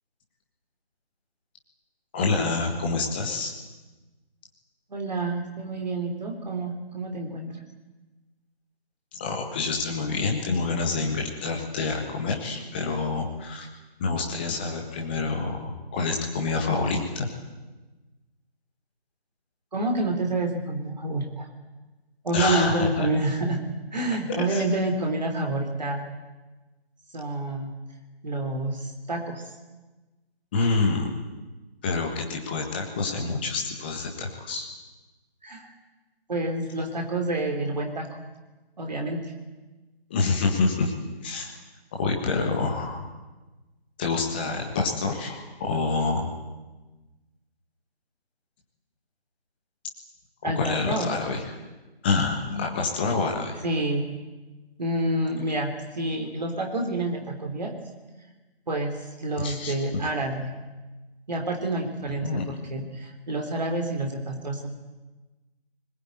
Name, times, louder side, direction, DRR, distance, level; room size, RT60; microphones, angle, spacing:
voice 1, 2.1-3.5 9.2-13.7 14.0-17.3 22.3-23.1 24.4-24.6 30.5-31.1 31.8-34.7 40.1-40.9 41.2-41.5 41.9-43.1 44.0-46.3 50.4-51.4 52.0-53.6 59.4-60.0 62.2-62.4, left 3 dB, 10° left, 0 dB, 1.5 m, -27 dB
voice 2, 4.9-7.6 19.7-21.5 22.2-23.6 23.9-26.1 27.1-27.7 28.2-29.4 35.4-35.7 36.3-38.2 38.8-39.2 50.4-51.1 53.6-54.2 54.8-57.7 58.7-58.9 59.2-60.5 61.3-64.7, right 2 dB, 40° right, 3 dB, 3.5 m, -28 dB
23.0 x 20.5 x 9.4 m, 1.2 s
figure-of-eight pair, 160°, 32 cm